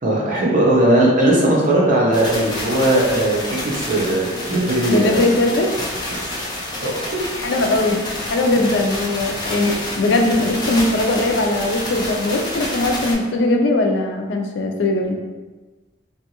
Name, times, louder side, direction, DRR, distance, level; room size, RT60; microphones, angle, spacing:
voice 1, 0.0-5.2 6.1-6.2 6.8-7.2, right 1 dB, 45° right, -4 dB, 0.7 m, -18 dB
sound 1, 2.1-13.1, left 1 dB, 25° left, 0.5 m, -28 dB
voice 2, 4.9-5.7 7.3-15.2, left 2 dB, 85° left, 3 dB, 0.4 m, -20 dB
2.5 x 2.3 x 2.8 m, 1.2 s
head